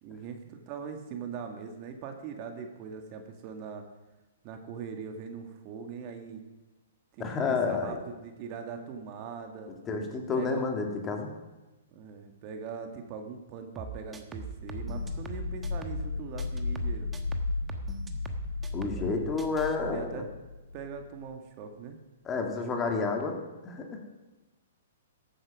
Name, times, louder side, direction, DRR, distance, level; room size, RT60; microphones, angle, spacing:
voice 1, 0.0-3.8 4.4-6.4 7.1-9.7 10.4-10.6 11.9-17.1 18.8-19.5 19.8-20.2 20.7-22.0, right 6 dB, 40° right, 5 dB, 1.6 m, -41 dB
voice 2, 7.2-8.0 9.9-11.3 18.7-20.2 22.2-23.4 23.6-24.0, left 4 dB, 20° left, 2 dB, 2.2 m, -30 dB
sound 1, 13.8-16.1 16.4-19.1 19.4-19.8, right 5 dB, 10° right, 1.1 m, -41 dB
sound 2, 14.6-21.4, left 4 dB, 85° left, 0.7 m, -35 dB
14.0 x 8.8 x 6.1 m, 1.1 s
hypercardioid pair, 125°, 0 cm